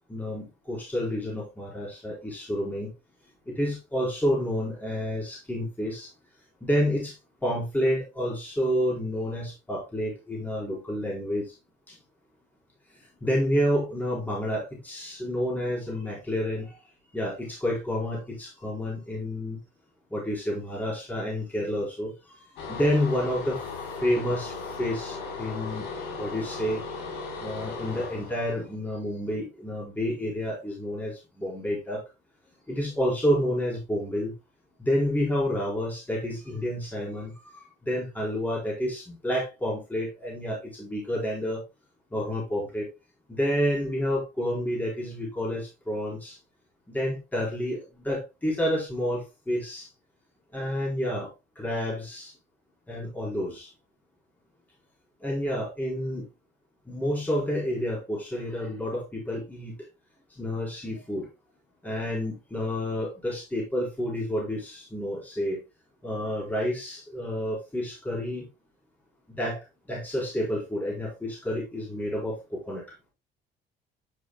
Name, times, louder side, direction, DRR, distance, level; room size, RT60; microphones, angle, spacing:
voice 1, 0.1-2.9 3.5-6.1 6.6-11.6 11.9-12.0 12.9-16.8 17.1-19.6 20.1-23.6 24.0-25.9 26.2-26.8 27.4-32.0 32.7-34.3 34.8-41.6 42.1-42.9 43.3-46.4 46.9-49.9 50.5-52.3 52.9-53.7 55.2-56.3 56.9-59.7 60.3-61.3 61.8-65.6 66.0-68.5 69.3-69.6 69.9-72.8, equal, 10° left, 4.1 m, -29 dB
sound 1, 22.6-28.7, left 4 dB, 90° left, 4.1 m, -37 dB
10.0 x 6.4 x 2.3 m
cardioid pair, 110°, 17 cm